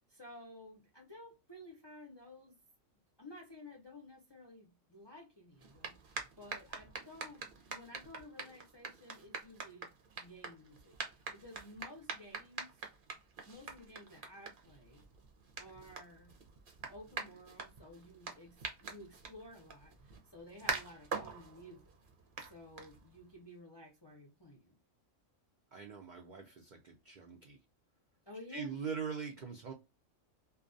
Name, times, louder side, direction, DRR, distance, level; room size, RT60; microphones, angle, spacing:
voice 1, 0.0-2.6 3.2-9.9 10.2-12.7 13.4-15.0 15.6-16.4 16.9-21.9 22.5-24.8 28.3-28.8, left 1 dB, 40° left, 0.3 m, -54 dB
sound 1, 5.6-23.3, right 5 dB, 50° right, 0.7 m, -45 dB
voice 2, 25.7-27.6 28.5-29.7, right 6 dB, 90° right, 0.4 m, -42 dB
2.3 x 2.2 x 2.5 m
omnidirectional pair, 1.4 m